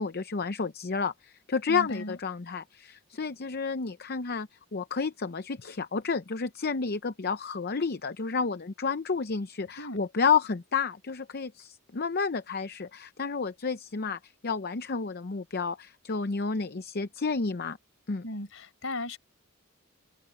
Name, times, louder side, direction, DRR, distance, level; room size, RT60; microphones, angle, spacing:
voice 1, 0.0-17.8 18.1-18.2, left 5 dB, 45° left, 0.7 m, -31 dB
voice 2, 1.7-2.2 9.8-10.0 18.2-19.2, left 1 dB, 65° left, 5.1 m, -36 dB
head